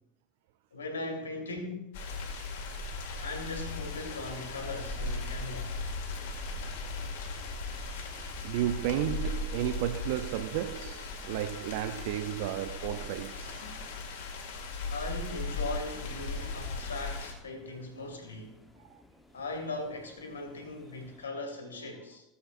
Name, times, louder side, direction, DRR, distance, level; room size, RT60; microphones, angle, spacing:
voice 1, 0.7-2.0 3.1-5.9 13.5-13.8 14.9-18.6 19.3-22.2, left 2 dB, 90° left, 2.0 m, -39 dB
sound 1, 1.9-17.3, left 3 dB, 70° left, 2.0 m, -38 dB
sound 2, 3.6-21.3, left 2 dB, 10° left, 1.0 m, -54 dB
voice 2, 7.7-14.0 16.4-16.5 18.8-19.0, right 12 dB, 65° right, 0.5 m, -34 dB
16.5 x 7.9 x 2.5 m
hypercardioid pair, 80°, 0 cm